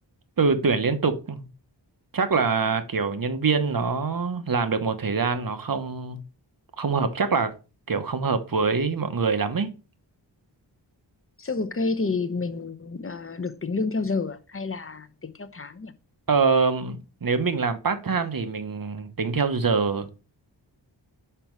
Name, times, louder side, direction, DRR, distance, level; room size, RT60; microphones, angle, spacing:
voice 1, 0.4-1.4 2.1-6.2 6.8-7.5 7.9-9.7 16.3-20.1, right 4 dB, 50° right, 1.0 m, -24 dB
voice 2, 11.4-15.9, left 3 dB, 30° left, 0.8 m, -29 dB
5.7 x 5.3 x 4.6 m
wide cardioid pair, 70°, 43 cm